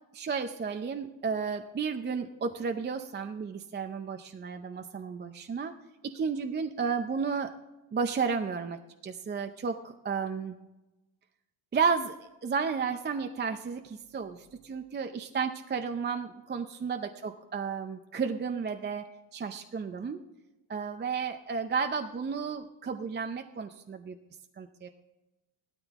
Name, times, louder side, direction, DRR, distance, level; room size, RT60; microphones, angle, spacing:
voice 1, 0.2-5.7 6.0-7.5 7.9-10.6 11.7-20.2 20.7-24.2 24.6-24.9, right 5 dB, 25° right, 7 dB, 0.5 m, -33 dB
15.5 x 13.0 x 3.6 m, 1.1 s
cardioid pair, 140°, 47 cm